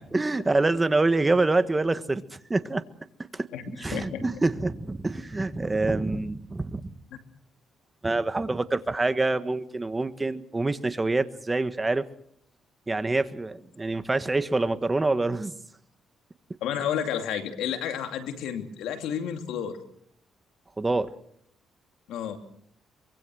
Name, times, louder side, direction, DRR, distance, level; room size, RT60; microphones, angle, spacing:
voice 1, 0.0-2.8 3.3-6.9 8.0-12.1 12.9-15.6 20.8-21.1, right 2 dB, 20° right, 12 dB, 1.4 m, -26 dB
voice 2, 3.9-4.2 16.6-19.8 22.1-22.4, left 9 dB, 90° left, 6 dB, 2.7 m, -31 dB
24.5 x 22.5 x 6.4 m, 0.69 s
cardioid pair, 90°, 0 cm